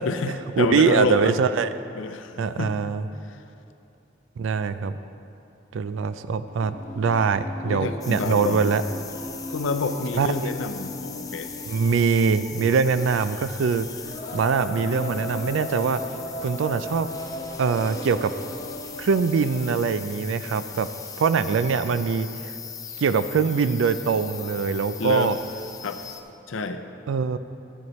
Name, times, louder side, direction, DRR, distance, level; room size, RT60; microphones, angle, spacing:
voice 1, 0.0-1.3 1.9-2.8 3.3-3.4 7.6-8.6 9.5-11.5 25.0-25.3 25.8-26.0 26.5-26.8, left 3 dB, 85° left, 8 dB, 0.6 m, -28 dB
voice 2, 0.6-1.7 2.4-3.0 4.4-5.0 5.7-8.8 10.2-10.5 11.7-13.9 14.3-16.0 16.4-17.1 17.6-18.3 19.0-20.9 21.2-22.5 23.0-25.4 27.1-27.4, right 5 dB, 80° right, 12 dB, 0.3 m, -23 dB
Singing, 6.5-19.7, left 1 dB, 35° left, 1.1 m, -37 dB
sound 1, 8.0-26.2, left 7 dB, 20° left, 0.5 m, -40 dB
11.0 x 10.5 x 3.1 m, 2.7 s
head